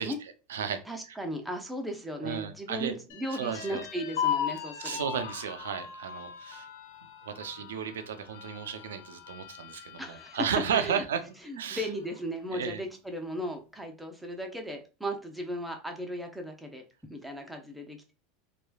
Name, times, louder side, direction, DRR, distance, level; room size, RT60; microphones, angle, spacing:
voice 1, 0.0-0.8 2.2-2.9 3.3-3.8 4.8-6.7 7.2-11.2 11.5-11.9 12.5-12.8, right 7 dB, 90° right, 9 dB, 0.4 m, -33 dB
voice 2, 0.9-5.0 10.0-10.4 10.7-11.0 11.4-16.8 17.1-18.1, equal, 5° right, 3 dB, 0.7 m, -36 dB
sound 1, 3.1-10.7 11.2-11.3 11.7-12.4, left 9 dB, 70° left, 0.4 m, -38 dB
3.1 x 2.3 x 2.2 m, 0.33 s
hypercardioid pair, 105°, 0 cm